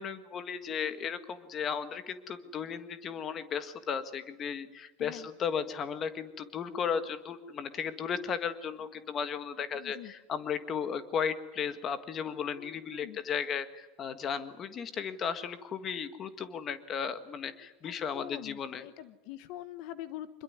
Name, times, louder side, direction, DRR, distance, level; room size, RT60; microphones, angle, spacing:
voice 1, 0.0-18.8, left 7 dB, 25° left, 12 dB, 1.6 m, -35 dB
voice 2, 9.7-10.1 12.5-13.2 17.8-20.4, left 13 dB, 55° left, 13 dB, 1.3 m, -44 dB
26.0 x 22.0 x 9.6 m, 1.1 s
supercardioid pair, 170°, 0 cm